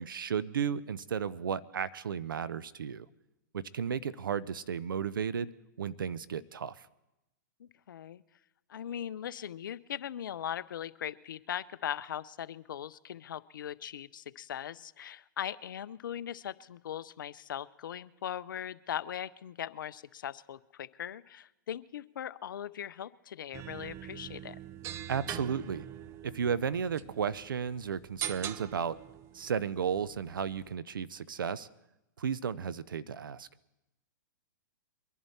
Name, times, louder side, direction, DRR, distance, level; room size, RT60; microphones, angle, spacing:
voice 1, 0.0-3.1 3.5-5.5 5.8-6.7 25.1-25.8 26.2-29.0 29.3-31.7 32.2-33.5, right 7 dB, 90° right, 17 dB, 0.6 m, -34 dB
voice 2, 7.6-8.2 8.7-24.6, left 10 dB, 75° left, 17 dB, 0.5 m, -40 dB
sound 1, 23.5-30.7, right 11 dB, 25° right, 0.4 m, -43 dB
23.0 x 11.0 x 4.3 m, 0.93 s
hypercardioid pair, 130°, 11 cm